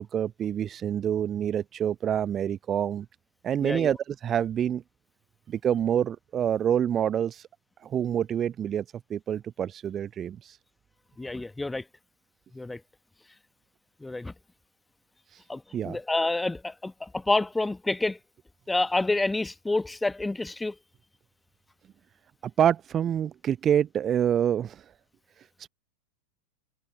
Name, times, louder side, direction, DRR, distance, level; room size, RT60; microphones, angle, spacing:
voice 1, 0.0-3.1 3.4-4.8 5.5-7.5 7.8-8.8 9.1-10.6 15.3-15.4 15.7-16.0 22.6-24.8, right 9 dB, 25° right, 0.7 m, -27 dB
voice 2, 3.6-3.9 11.2-11.8 12.5-12.8 14.0-14.3 15.5-18.2 18.7-20.7, left 2 dB, 5° left, 1.2 m, -28 dB
figure-of-eight pair, 90°, 0 cm